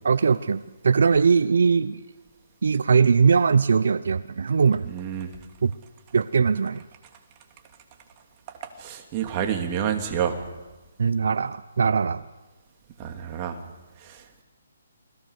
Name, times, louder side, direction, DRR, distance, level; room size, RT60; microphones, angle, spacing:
voice 1, 0.0-2.0 2.6-4.9 5.6-5.7 6.1-6.8 11.0-12.2, right 5 dB, 70° right, 13 dB, 0.8 m, -20 dB
voice 2, 4.8-5.4 8.6-10.4 13.0-13.6 14.0-14.4, right 9 dB, 25° right, 4 dB, 2.9 m, -29 dB
28.5 x 20.5 x 6.7 m, 1.1 s
hypercardioid pair, 160°, 0 cm